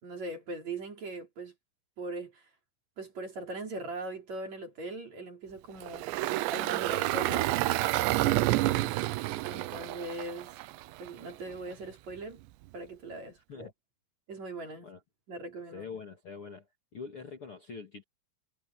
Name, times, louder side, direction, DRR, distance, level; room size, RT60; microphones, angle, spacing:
voice 1, 0.0-1.5 2.0-2.5 3.0-6.1 6.5-7.6 9.5-10.6 11.0-12.4 12.7-13.7 14.3-14.9 15.3-15.9, right 2 dB, 40° right, 4.9 m, -40 dB
Engine, 5.8-11.1, right 17 dB, 90° right, 3.0 m, -29 dB
voice 2, 8.6-8.9 13.5-13.7 14.8-15.0 15.7-16.7 16.9-18.0, left 5 dB, 40° left, 2.5 m, -44 dB
omnidirectional pair, 5.1 m